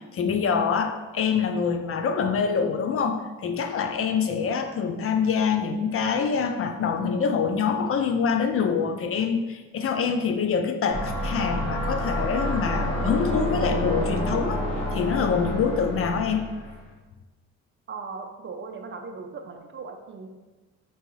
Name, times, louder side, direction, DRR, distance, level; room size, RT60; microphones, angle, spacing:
voice 1, 0.1-14.6 14.9-16.5, left 6 dB, 50° left, 7 dB, 0.4 m, -25 dB
sound 1, 10.9-16.9, equal, 5° left, 1.2 m, -28 dB
voice 2, 17.9-20.3, right 4 dB, 40° right, 5 dB, 0.5 m, -38 dB
4.4 x 2.9 x 3.1 m, 1.2 s
cardioid pair, 90°, 30 cm